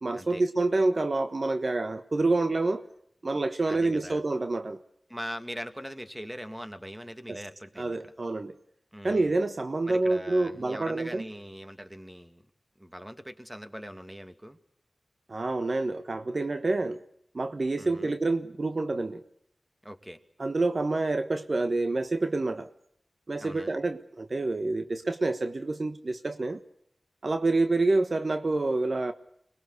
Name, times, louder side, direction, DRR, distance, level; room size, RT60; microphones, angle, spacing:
voice 1, 0.0-2.8 3.2-4.8 7.3-7.4 7.8-8.5 9.0-11.2 15.3-17.0 17.3-19.2 20.4-22.7 23.3-26.6 27.2-29.1, right 2 dB, 55° right, 9 dB, 1.3 m, -27 dB
voice 2, 3.7-4.2 5.1-8.1 8.9-9.3 9.8-12.4 12.8-14.6 17.8-18.1 19.8-20.2 23.4-23.8, equal, 10° right, 8 dB, 2.5 m, -41 dB
25.5 x 21.0 x 8.1 m, 0.72 s
cardioid pair, 45°, 0 cm